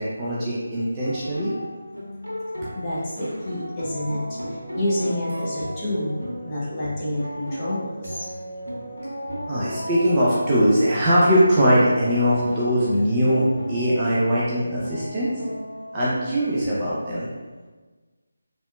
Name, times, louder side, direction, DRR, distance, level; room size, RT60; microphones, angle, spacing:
voice 1, 0.0-1.5 9.5-15.3 15.9-17.3, equal, 20° right, -8 dB, 0.4 m, -21 dB
sound 1, 0.9-16.9, equal, 85° right, 0.6 m, -35 dB
voice 2, 2.7-8.2, left 1 dB, 20° left, -10 dB, 0.7 m, -28 dB
2.8 x 2.1 x 2.2 m, 1.3 s
figure-of-eight pair, 155°, 0 cm